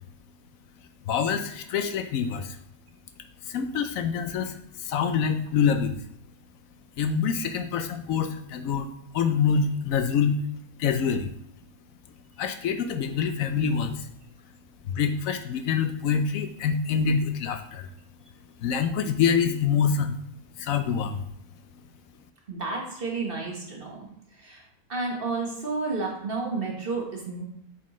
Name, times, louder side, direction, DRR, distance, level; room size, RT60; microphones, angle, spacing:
voice 1, 1.1-2.6 3.4-6.0 7.0-10.4 10.8-11.3 12.4-14.1 14.9-17.9 18.6-20.2 20.6-21.3, left 6 dB, 75° left, 7 dB, 0.9 m, -26 dB
voice 2, 22.5-24.1 24.4-27.4, right 3 dB, 40° right, -1 dB, 1.4 m, -31 dB
7.2 x 4.3 x 3.1 m, 0.71 s
omnidirectional pair, 1.5 m